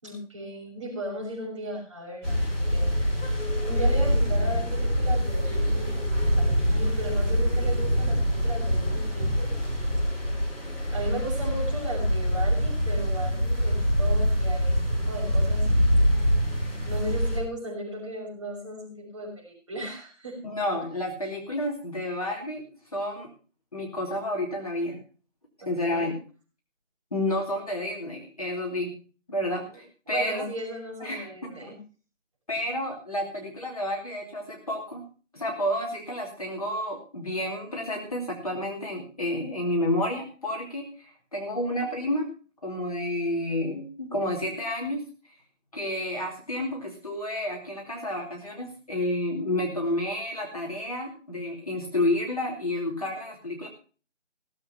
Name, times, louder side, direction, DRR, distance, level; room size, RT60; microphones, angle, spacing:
voice 1, 0.0-2.4 2.7-6.0 6.4-9.6 10.9-14.7 15.1-15.7 16.0-16.1 16.9-20.4 25.6-26.2 29.7-29.8 30.1-31.8, right 1 dB, 25° right, -3 dB, 5.9 m, -36 dB
sound 1, 2.2-17.4, equal, 10° left, 7.0 m, -25 dB
voice 2, 20.4-22.6 22.9-23.3 23.7-25.0 25.6-26.1 27.1-28.9 29.3-30.4 31.0-31.7 32.5-35.0 35.3-42.3 42.6-45.0 45.7-53.7, left 1 dB, 30° left, -1 dB, 2.8 m, -30 dB
18.0 x 7.8 x 5.8 m, 0.38 s
figure-of-eight pair, 170°, 37 cm